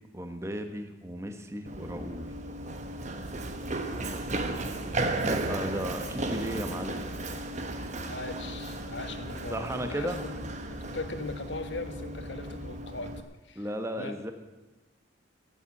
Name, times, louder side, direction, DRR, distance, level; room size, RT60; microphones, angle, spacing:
voice 1, 0.1-2.3 5.2-7.1 9.5-10.2 13.5-14.3, equal, 15° right, 7 dB, 1.1 m, -35 dB
Run, 1.7-13.2, right 2 dB, 35° right, 1.1 m, -35 dB
voice 2, 8.1-13.1 13.5-13.6 14.0-14.3, left 2 dB, 65° left, 8 dB, 1.4 m, -39 dB
16.0 x 8.9 x 8.4 m, 1.1 s
head